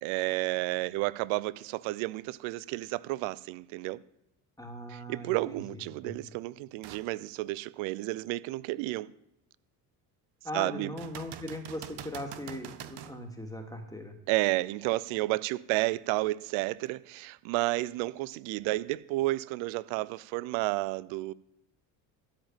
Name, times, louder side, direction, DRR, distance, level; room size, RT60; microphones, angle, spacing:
voice 1, 0.0-4.0 4.9-9.1 10.5-10.9 14.3-21.3, right 19 dB, 70° right, 0.7 m, -31 dB
voice 2, 4.6-6.1 10.4-14.1, left 1 dB, 5° left, 2.6 m, -40 dB
sound 1, 6.8-7.1 7.7-7.8 11.0-13.2 16.9-17.0, right 10 dB, 50° right, 1.2 m, -44 dB
13.0 x 5.1 x 9.0 m
hypercardioid pair, 70°, 50 cm